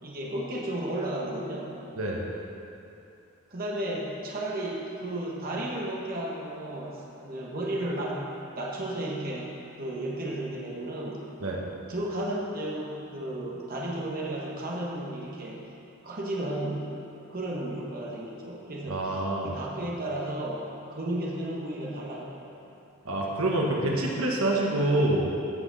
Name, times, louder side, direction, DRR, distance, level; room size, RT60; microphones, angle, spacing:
voice 1, 0.0-1.7 3.5-8.2 8.5-11.2 11.9-15.6 16.0-16.9 17.3-22.5, right 1 dB, 45° right, -3 dB, 1.3 m, -33 dB
voice 2, 18.9-19.5 23.0-25.3, right 1 dB, 90° right, -2 dB, 1.3 m, -26 dB
14.5 x 5.9 x 4.0 m, 2.7 s
head